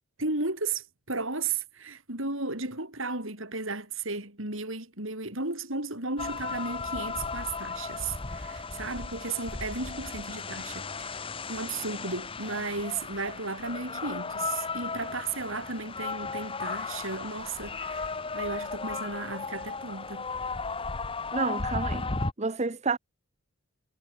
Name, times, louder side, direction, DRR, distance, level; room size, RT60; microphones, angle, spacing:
voice 1, 0.2-11.2 11.5-20.3, right 3 dB, 65° right, 7.5 m, -34 dB
sound 1, 6.2-22.3, left 4 dB, 25° left, 1.1 m, -35 dB
voice 2, 21.3-22.1 22.4-23.0, right 4 dB, 30° right, 0.9 m, -29 dB
head